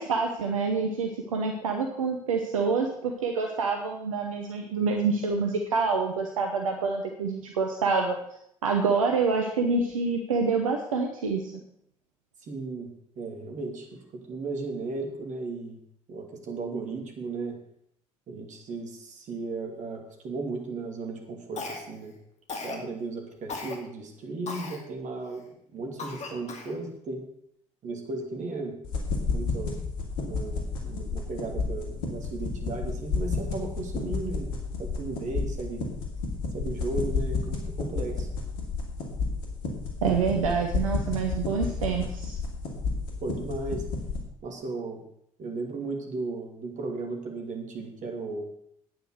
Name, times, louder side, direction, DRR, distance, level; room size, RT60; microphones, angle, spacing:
voice 1, 0.0-8.2 8.6-11.5 40.0-42.4, right 4 dB, 75° right, 3 dB, 1.0 m, -27 dB
voice 2, 12.4-12.9 13.2-13.9 14.1-15.8 16.1-17.6 18.3-22.1 22.5-27.2 27.8-28.7 29.2-29.8 30.2-34.5 34.8-35.8 36.5-38.3 43.2-43.8 44.4-45.0 45.4-48.5, right 3 dB, 45° right, 2 dB, 2.8 m, -35 dB
Cough, 21.6-22.1 22.5-22.8 23.5-23.8 24.5-24.8 25.3-25.4 26.0-26.8, left 4 dB, 40° left, 2.2 m, -37 dB
sound 1, 28.8-44.2, left 4 dB, 65° left, 2.5 m, -31 dB
9.2 x 9.2 x 6.6 m, 0.70 s
figure-of-eight pair, 50°, 17 cm